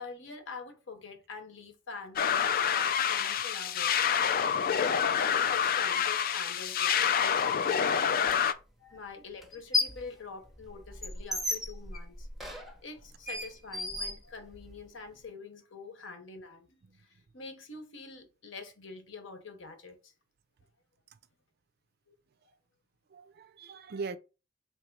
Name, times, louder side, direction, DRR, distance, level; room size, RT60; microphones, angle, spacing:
voice 1, 0.0-4.0 4.9-8.4 8.8-20.1 22.1-22.2, left 4 dB, 70° left, 0.9 m, -46 dB
sound 1, 2.2-8.5, left 8 dB, 50° left, 0.3 m, -27 dB
voice 2, 4.3-5.3 23.1-24.2, right 4 dB, 55° right, 0.4 m, -42 dB
sound 2, 8.3-8.4 9.4-10.1 10.4-14.8, left 2 dB, ahead, 0.6 m, -34 dB
3.4 x 3.0 x 4.6 m
head